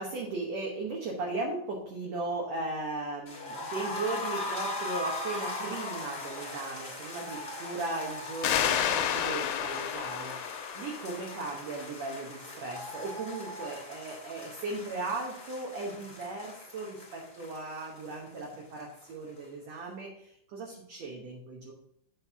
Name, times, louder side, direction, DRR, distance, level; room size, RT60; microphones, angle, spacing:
voice 1, 0.0-21.7, right 3 dB, 65° right, -2 dB, 1.9 m, -37 dB
sound 1, 3.3-19.1 19.4-19.5 19.8-19.9, left 2 dB, 20° left, 2.2 m, -40 dB
sound 2, 8.4-11.8, left 10 dB, 85° left, 2.3 m, -31 dB
8.6 x 4.2 x 4.6 m, 0.70 s
omnidirectional pair, 4.0 m